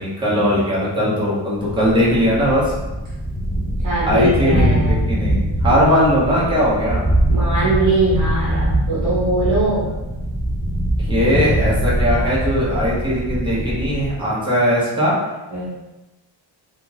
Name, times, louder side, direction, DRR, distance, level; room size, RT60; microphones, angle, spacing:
voice 1, 0.0-2.6 4.1-7.0 11.0-15.1, equal, 10° right, -8 dB, 0.9 m, -19 dB
Thunder, 1.6-14.3, right 1 dB, 15° left, 0.4 m, -22 dB
voice 2, 3.8-5.0 5.6-6.0 7.3-9.9 15.5-15.7, right 1 dB, 40° right, -8 dB, 1.2 m, -21 dB
3.6 x 2.3 x 2.9 m, 1.1 s
wide cardioid pair, 165°, 46 cm